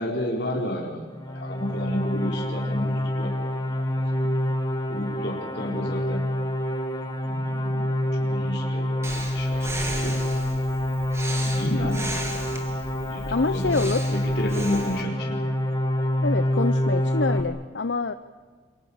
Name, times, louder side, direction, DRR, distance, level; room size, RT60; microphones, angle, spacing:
voice 1, 0.0-3.3 3.7-4.3 4.9-6.3 7.2-10.2 11.4-12.3 13.1-15.4, left 1 dB, 70° left, -1 dB, 4.5 m, -32 dB
sound 1, 1.1-17.4, left 1 dB, 20° left, 2.1 m, -27 dB
Breathing, 9.0-15.0, right 1 dB, 15° right, 3.4 m, -36 dB
voice 2, 13.3-14.0 16.2-18.1, left 3 dB, 85° left, 10 dB, 0.9 m, -26 dB
28.5 x 23.5 x 7.3 m, 1.5 s
head